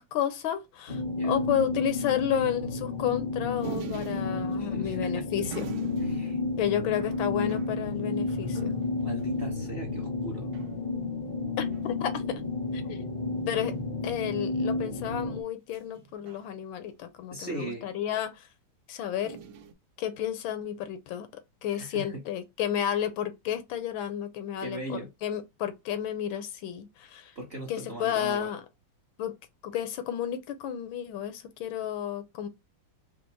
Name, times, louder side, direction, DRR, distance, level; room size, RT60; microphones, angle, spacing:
voice 1, 0.0-5.7 6.6-8.7 11.6-12.4 12.7-13.1 13.5-13.8 14.0-18.5 18.9-19.4 20.0-27.3 27.7-28.6 29.2-29.3 29.6-32.5, left 10 dB, 75° left, 1.4 m, -32 dB
sound 1, 0.9-15.4, left 3 dB, 40° left, 0.8 m, -32 dB
voice 2, 1.1-1.5 4.6-5.2 6.0-6.7 9.0-10.5 17.3-17.8 21.7-22.2 24.6-25.1 27.3-28.5, right 2 dB, 40° right, 0.9 m, -39 dB
sound 2, 3.6-9.6 10.0-10.1 10.3-10.8 11.6-12.2 13.6-14.1 15.7-17.0 19.2-19.7, right 6 dB, 80° right, 1.5 m, -44 dB
4.4 x 2.1 x 3.9 m
omnidirectional pair, 2.2 m